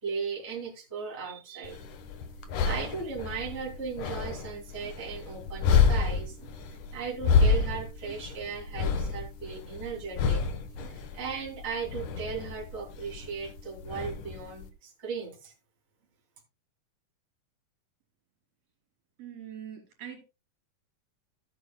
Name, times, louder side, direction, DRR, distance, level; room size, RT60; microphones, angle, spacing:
voice 1, 0.0-1.8 2.6-6.4 6.9-10.4 10.8-15.5, right 5 dB, 20° right, 2.8 m, -37 dB
sound 1, 1.6-14.7, left 5 dB, 75° left, 2.5 m, -29 dB
voice 2, 19.2-20.2, right 9 dB, 55° right, 4.6 m, -42 dB
16.5 x 8.4 x 2.2 m
omnidirectional pair, 3.6 m